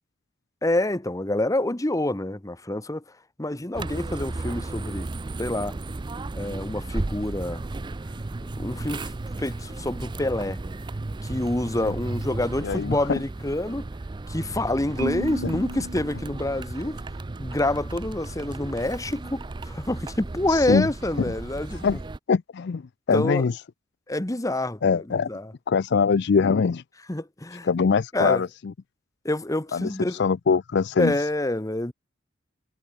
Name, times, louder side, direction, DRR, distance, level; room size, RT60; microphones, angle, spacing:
voice 1, 0.6-3.0 3.4-5.1 5.4-5.7 6.4-7.6 8.6-9.1 9.4-10.6 11.2-13.9 14.3-17.0 17.4-22.0 23.1-23.4 24.1-25.5 27.1-27.7 28.1-28.4 29.2-30.2 31.0-31.9, left 1 dB, 15° left, 1.0 m, -27 dB
sound 1, 3.7-22.2, right 2 dB, 20° right, 0.4 m, -34 dB
voice 2, 12.6-13.2 20.5-20.9 21.8-22.0 22.3-22.8 23.1-23.6 24.8-25.3 25.7-26.8 27.6-28.7 29.7-31.1, left 5 dB, 55° left, 0.4 m, -23 dB
Marimba xylophone, 15.0-17.2, right 2 dB, 70° right, 1.9 m, -35 dB
head